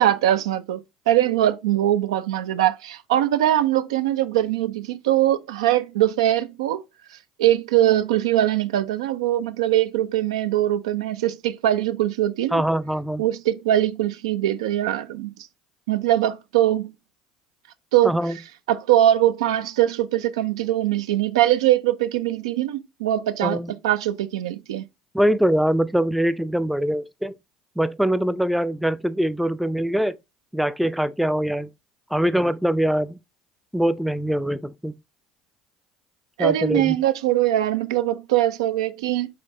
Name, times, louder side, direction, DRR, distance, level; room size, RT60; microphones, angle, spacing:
voice 1, 0.0-6.8 7.4-12.6 13.2-15.3 15.9-16.9 17.9-18.2 18.7-23.6 23.8-24.8 36.4-39.3, right 13 dB, 75° right, 0.3 m, -22 dB
voice 2, 12.5-13.2 18.0-18.4 23.4-23.7 25.1-27.4 27.8-30.2 30.5-31.7 32.1-33.2 33.7-34.9 36.4-37.0, equal, ahead, 0.4 m, -23 dB
5.0 x 3.4 x 2.7 m
hypercardioid pair, 65°, 3 cm